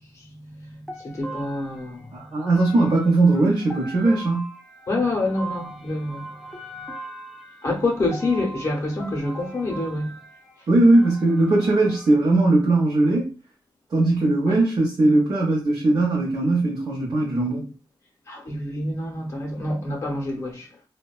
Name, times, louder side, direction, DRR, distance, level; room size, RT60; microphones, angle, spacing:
voice 1, 0.1-2.1 4.9-6.3 7.6-10.1 14.5-14.6 18.3-20.7, left 2 dB, 40° left, 0.7 m, -27 dB
sound 1, 0.9-12.2, right 1 dB, ahead, 0.5 m, -40 dB
voice 2, 2.1-4.5 10.7-13.3 13.9-17.7, right 2 dB, 50° right, 0.6 m, -19 dB
2.7 x 2.1 x 2.3 m
wide cardioid pair, 130°, 8 cm